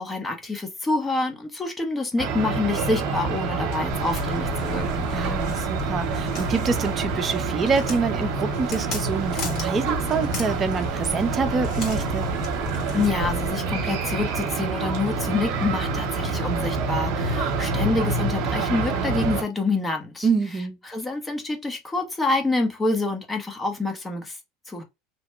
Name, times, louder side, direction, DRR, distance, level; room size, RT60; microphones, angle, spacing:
voice 1, 0.0-5.1 12.9-20.3 20.9-24.4 24.7-24.8, left 3 dB, 15° left, 1.0 m, -27 dB
sound 1, 2.2-19.4, right 4 dB, 60° right, 0.9 m, -27 dB
Walk footsteps, 3.9-13.5, left 3 dB, 45° left, 1.8 m, -36 dB
voice 2, 5.1-12.3 20.2-20.8, right 4 dB, 30° right, 0.6 m, -26 dB
2.9 x 2.1 x 3.1 m
hypercardioid pair, 90°, 0 cm